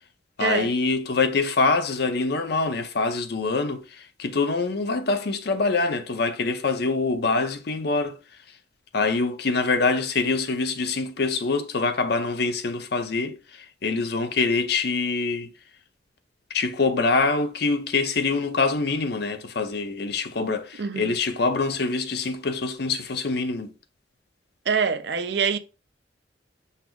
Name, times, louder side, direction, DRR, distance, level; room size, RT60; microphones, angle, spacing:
voice 1, 0.4-8.2 8.9-15.5 16.5-23.7, left 3 dB, 60° left, 0.6 m, -25 dB
voice 2, 20.8-21.1 24.7-25.6, right 6 dB, 65° right, 0.5 m, -24 dB
5.7 x 2.0 x 4.5 m
head